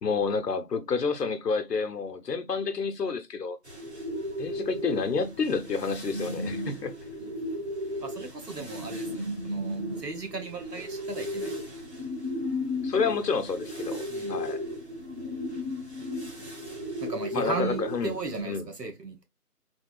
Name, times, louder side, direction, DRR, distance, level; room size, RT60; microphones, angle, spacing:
voice 1, 0.0-3.6 4.4-7.0 12.8-14.0 14.3-14.6 17.3-18.2 18.4-18.7, left 5 dB, 80° left, 0.9 m, -29 dB
sound 1, 3.6-18.4, left 1 dB, 45° right, 0.9 m, -35 dB
voice 2, 8.0-11.5 14.1-14.4 17.0-19.2, right 4 dB, 85° right, 1.3 m, -36 dB
3.5 x 2.7 x 2.2 m
figure-of-eight pair, 175°, 47 cm